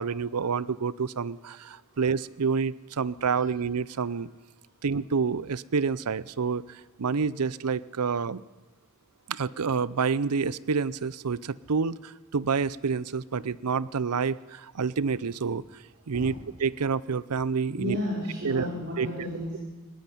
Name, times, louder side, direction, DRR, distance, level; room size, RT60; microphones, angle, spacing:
voice 1, 0.0-4.3 4.8-8.4 9.3-15.6 16.1-16.3 16.6-18.0 18.4-18.7 19.0-19.3, right 5 dB, 90° right, 20 dB, 0.6 m, -28 dB
voice 2, 17.7-19.6, left 1 dB, 50° right, -6 dB, 5.5 m, -33 dB
20.0 x 17.5 x 10.0 m, 1.3 s
head